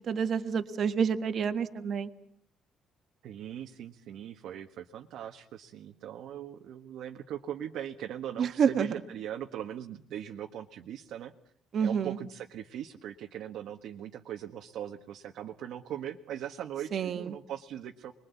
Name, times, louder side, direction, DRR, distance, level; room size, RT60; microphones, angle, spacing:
voice 1, 0.0-2.1 8.4-8.9 11.7-12.2 16.9-17.3, right 7 dB, 40° right, 9 dB, 1.7 m, -28 dB
voice 2, 3.2-11.3 11.8-18.1, right 10 dB, 65° right, 4 dB, 1.5 m, -40 dB
30.0 x 22.0 x 8.3 m, 0.66 s
cardioid pair, 165°, 0 cm